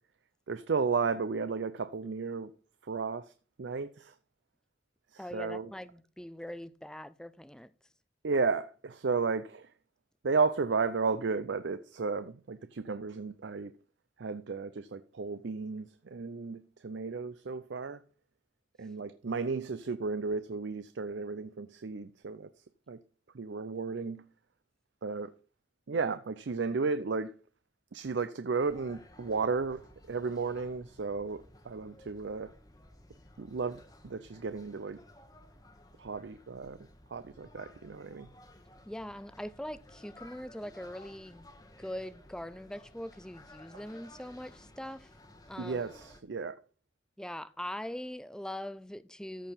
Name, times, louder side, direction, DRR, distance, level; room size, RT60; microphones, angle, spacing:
voice 1, 0.5-2.5 2.8-3.3 3.6-4.1 5.1-5.7 8.2-9.7 10.2-13.7 14.2-18.0 18.8-22.5 22.9-23.0 23.3-24.2 25.0-25.3 25.9-27.3 27.9-32.5 33.4-35.0 36.0-36.8 37.1-38.3 45.6-46.6, right 4 dB, 70° right, 0.5 m, -33 dB
voice 2, 5.2-7.7 38.9-41.5 41.8-45.1 45.5-45.9 47.2-49.5, left 1 dB, 5° left, 0.4 m, -42 dB
sound 1, 28.6-46.2, left 1 dB, 20° left, 1.1 m, -56 dB
14.0 x 4.6 x 5.6 m
head